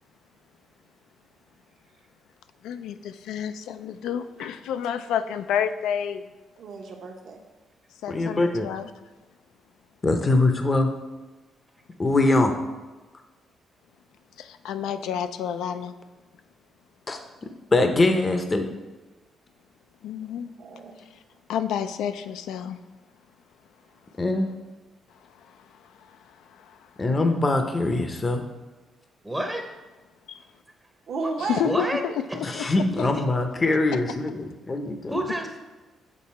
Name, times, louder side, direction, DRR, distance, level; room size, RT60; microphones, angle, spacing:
voice 1, 2.6-6.2 8.0-8.9 14.4-15.9 20.0-20.5 21.5-22.8 25.5-26.8 30.3-30.4 31.4-32.8, left 8 dB, 85° left, 10 dB, 0.3 m, -30 dB
voice 2, 6.6-7.4 20.3-21.0 31.1-31.6, right 4 dB, 65° right, 2 dB, 1.0 m, -33 dB
voice 3, 8.1-8.7 10.0-10.9 12.0-12.5 17.1-17.2 17.7-18.7 24.2-24.5 27.0-28.5 32.4-35.2, left 2 dB, 30° left, 6 dB, 0.6 m, -22 dB
voice 4, 29.2-29.6 31.2-31.3 31.6-32.0 35.1-35.6, right 1 dB, 10° right, 4 dB, 0.7 m, -28 dB
7.3 x 3.8 x 4.2 m, 1.2 s
cardioid pair, 90°, 0 cm